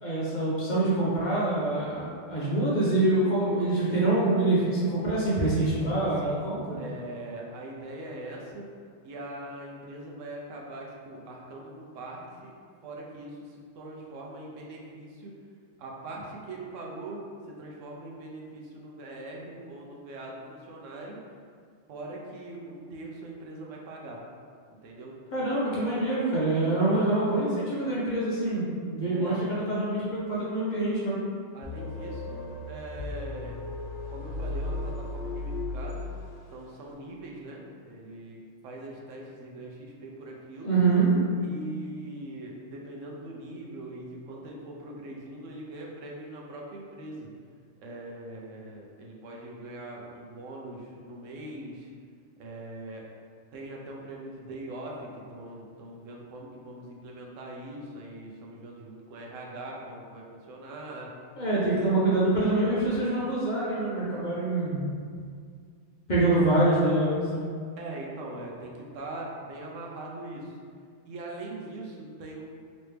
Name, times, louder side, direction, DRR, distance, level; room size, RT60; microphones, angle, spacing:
voice 1, 0.0-6.8 25.3-31.2 40.6-41.1 61.4-64.8 66.1-67.4, right 2 dB, 45° left, -8 dB, 0.8 m, -25 dB
voice 2, 6.8-8.7 9.0-12.5 12.8-15.3 15.8-21.2 21.9-24.2 24.8-25.2 29.1-29.4 31.5-33.6 34.1-36.1 36.5-40.7 41.4-47.3 47.8-51.9 52.4-53.0 53.5-61.1 61.7-61.9 67.8-70.6 71.1-72.4, right 1 dB, 80° right, -1 dB, 1.0 m, -41 dB
sound 1, 31.6-36.6, left 2 dB, 90° left, 1.0 m, -35 dB
3.2 x 3.0 x 3.2 m, 2.1 s
omnidirectional pair, 1.3 m